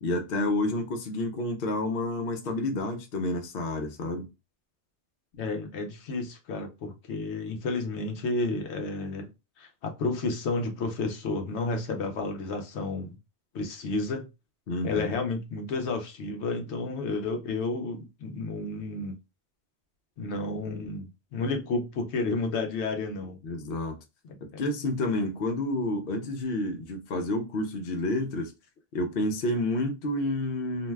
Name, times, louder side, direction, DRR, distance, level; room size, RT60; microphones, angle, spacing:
voice 1, 0.0-4.3 14.7-15.2 23.4-24.0 24.4-28.5 28.9-30.9, left 2 dB, 60° left, 0.8 m, -29 dB
voice 2, 5.3-9.3 9.6-13.2 13.5-14.2 14.8-19.1 20.2-23.4 24.2-24.6, left 3 dB, 90° left, 0.9 m, -31 dB
2.6 x 2.2 x 3.1 m
omnidirectional pair, 1.1 m